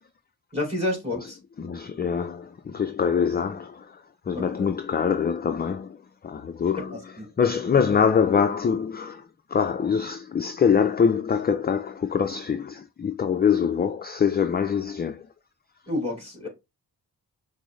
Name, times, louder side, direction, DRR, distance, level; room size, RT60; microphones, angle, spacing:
voice 1, 0.5-1.4 4.3-4.7 6.8-7.3 15.9-16.5, left 1 dB, 15° right, 2.7 m, -30 dB
voice 2, 1.6-3.9 4.3-6.0 6.2-6.9 7.4-9.2 9.5-15.3, left 7 dB, 25° left, 0.4 m, -24 dB
6.0 x 2.1 x 3.1 m
cardioid pair, 60°, 40 cm